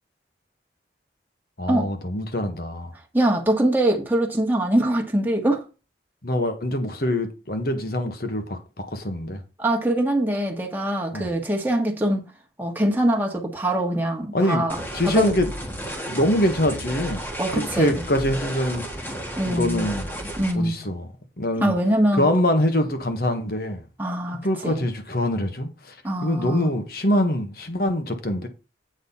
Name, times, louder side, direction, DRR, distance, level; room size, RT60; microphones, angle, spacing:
voice 1, 1.6-2.9 6.2-9.4 11.1-11.3 14.3-14.6 14.9-15.5 16.1-17.2 17.5-18.8 19.4-20.1 20.5-21.1 21.4-21.7 22.2-23.8 24.4-25.9 26.2-28.5, left 1 dB, 55° left, 1.4 m, -24 dB
voice 2, 3.1-5.6 9.6-12.2 12.6-15.3 17.4-18.0 19.4-19.9 20.4-20.9 21.6-22.3 24.0-24.9 26.0-26.7, right 1 dB, 10° right, 1.5 m, -23 dB
sound 1, 14.7-20.5, equal, 10° left, 1.5 m, -33 dB
8.0 x 4.2 x 5.5 m
head